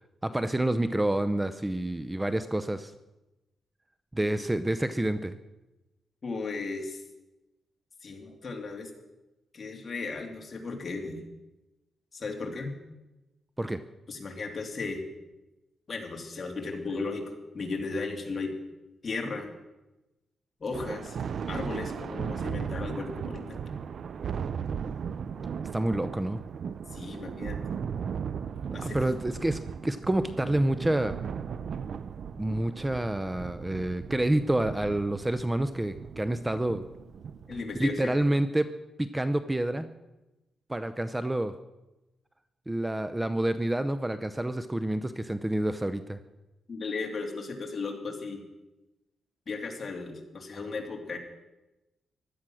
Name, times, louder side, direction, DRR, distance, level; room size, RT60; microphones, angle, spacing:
voice 1, 0.2-2.9 4.1-5.4 13.6-13.8 25.7-26.4 28.8-31.2 32.4-36.9 37.7-38.7 39.0-39.9 40.7-41.5 42.7-46.2, right 1 dB, 10° right, 11 dB, 0.6 m, -28 dB
voice 2, 6.2-7.0 8.0-8.9 9.5-11.2 12.1-12.7 14.1-15.0 15.9-17.2 17.5-18.5 19.0-19.5 20.6-21.2 21.5-23.6 26.9-27.6 28.7-29.0 37.5-38.1 46.7-48.4 49.5-51.2, left 4 dB, 40° left, 2 dB, 2.9 m, -35 dB
Thunder, 20.7-38.4, right 7 dB, 60° right, 0.5 m, -37 dB
16.0 x 12.0 x 6.3 m, 1.0 s
cardioid pair, 105°, 0 cm